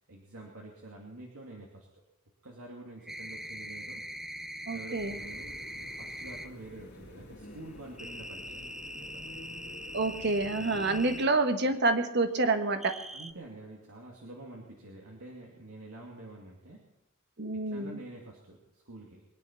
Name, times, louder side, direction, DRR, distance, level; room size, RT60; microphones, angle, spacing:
voice 1, 0.1-1.9 2.4-4.1 4.7-9.3 10.5-10.9 13.1-16.9 17.7-19.2, right 2 dB, 85° right, -2 dB, 2.5 m, -48 dB
sound 1, 3.0-6.5 8.0-11.3 12.8-13.3, equal, ahead, 0.6 m, -42 dB
voice 2, 4.7-5.2 9.9-13.0 17.4-18.0, right 3 dB, 55° right, 8 dB, 1.4 m, -28 dB
sound 2, 4.9-11.3, left 1 dB, 55° left, 2.5 m, -49 dB
22.5 x 10.0 x 5.9 m, 0.88 s
head